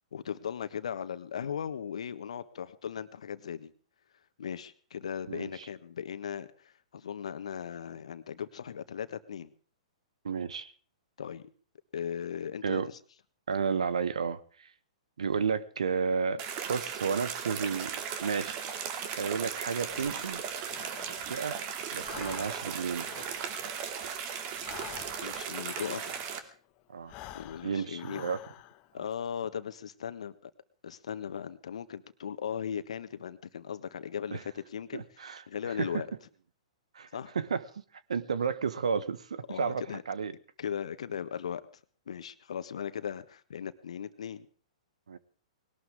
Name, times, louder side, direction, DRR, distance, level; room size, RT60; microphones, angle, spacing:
voice 1, 0.1-3.7 4.4-9.5 11.2-11.5 11.9-12.8 25.2-26.1 27.3-28.2 28.9-30.5 30.8-35.0 35.5-36.1 37.1-37.3 39.5-40.0 40.6-41.6 42.1-44.5, left 8 dB, 65° left, 1.5 m, -38 dB
voice 2, 5.3-5.7 10.2-10.7 12.6-12.9 13.5-14.7 15.2-17.9 18.2-18.6 19.2-20.4 21.3-21.6 21.9-23.1 26.9-27.1 27.6-28.4 34.3-34.4 34.9-35.4 35.8-35.9 36.9-37.1 37.3-37.6 38.1-40.3 45.1-45.2, right 6 dB, 75° right, 1.4 m, -32 dB
sound 1, 16.4-26.4, right 7 dB, 40° right, 2.5 m, -37 dB
Breathing, 19.8-21.6 21.9-26.5 27.0-28.9, left 14 dB, 35° left, 1.5 m, -49 dB
20.5 x 18.5 x 3.6 m
figure-of-eight pair, 110°, 4 cm